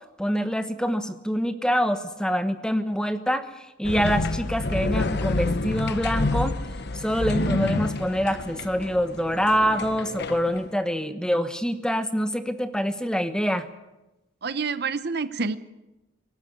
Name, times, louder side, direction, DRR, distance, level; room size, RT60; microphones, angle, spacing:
voice 1, 0.2-6.5 6.9-13.7, equal, 5° left, 9 dB, 1.1 m, -25 dB
sound 1, 3.8-10.7, left 2 dB, 55° left, 0.9 m, -28 dB
voice 2, 14.4-15.6, right 4 dB, 50° right, 13 dB, 0.8 m, -27 dB
24.5 x 13.5 x 9.5 m, 1.0 s
head